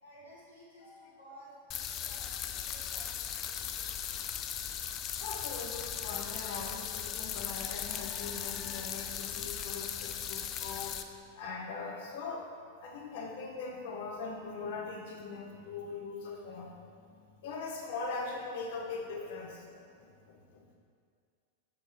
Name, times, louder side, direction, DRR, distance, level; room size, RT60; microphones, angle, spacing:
voice 1, 0.0-3.9, equal, 85° left, -10 dB, 1.7 m, -55 dB
sound 1, 1.7-11.0, left 9 dB, 35° left, 0.4 m, -38 dB
voice 2, 5.2-12.5 12.8-17.1 17.4-20.7, left 4 dB, 55° left, 0 dB, 1.0 m, -41 dB
6.9 x 6.0 x 3.4 m, 2.2 s
figure-of-eight pair, 90°, 0 cm